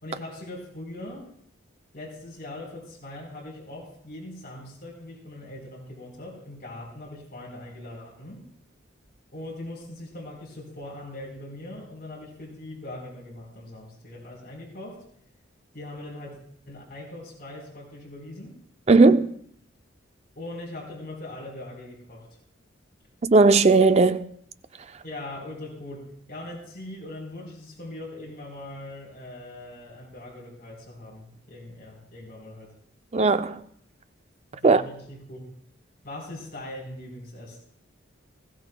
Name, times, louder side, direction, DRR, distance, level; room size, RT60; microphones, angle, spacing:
voice 1, 0.0-1.3 1.9-8.4 9.3-15.0 15.7-16.4 16.7-18.6 20.4-22.3 25.0-32.7 34.5-35.5 36.0-37.6, left 1 dB, 50° left, 4.1 m, -41 dB
voice 2, 18.9-19.3 23.2-24.3 33.1-33.6 34.6-34.8, right 3 dB, 35° right, 0.4 m, -17 dB
20.0 x 14.5 x 2.2 m
head